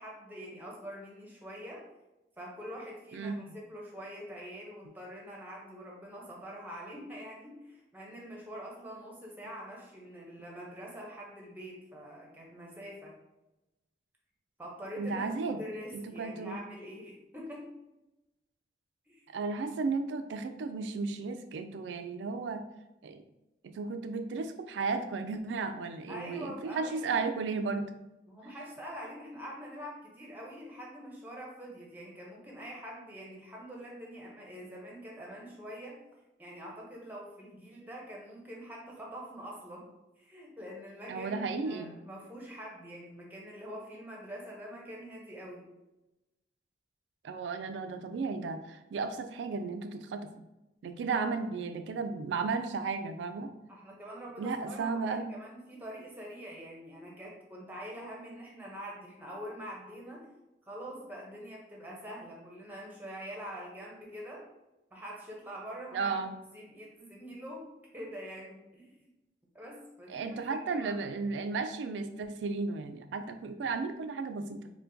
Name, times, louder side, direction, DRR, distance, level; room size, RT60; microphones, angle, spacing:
voice 1, 0.0-1.8 2.4-13.1 14.6-17.7 19.1-19.2 26.1-27.1 28.3-36.0 36.4-39.9 40.2-45.7 53.7-60.3 60.7-64.4 64.9-66.1 66.5-67.7 67.9-69.1 69.5-71.0, equal, 10° right, -2 dB, 0.7 m, -45 dB
voice 2, 15.0-15.6 15.9-16.6 19.3-22.7 23.0-23.2 23.6-27.9 41.1-42.0 47.2-50.3 50.8-53.5 54.4-55.3 65.9-66.4 70.1-74.7, right 4 dB, 85° right, 8 dB, 0.3 m, -34 dB
4.4 x 2.2 x 2.6 m, 0.97 s
head